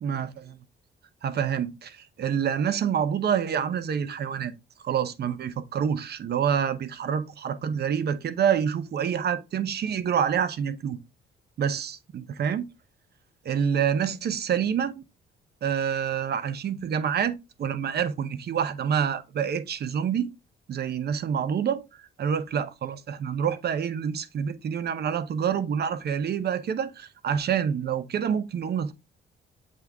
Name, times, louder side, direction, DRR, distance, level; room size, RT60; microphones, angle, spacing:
voice 1, 0.0-0.6 1.2-4.5 4.8-11.0 11.6-12.7 13.4-15.0 15.6-20.3 20.7-21.8 22.2-28.9, right 8 dB, 55° right, 0.8 m, -27 dB
7.7 x 3.6 x 3.5 m
cardioid pair, 90°, 20 cm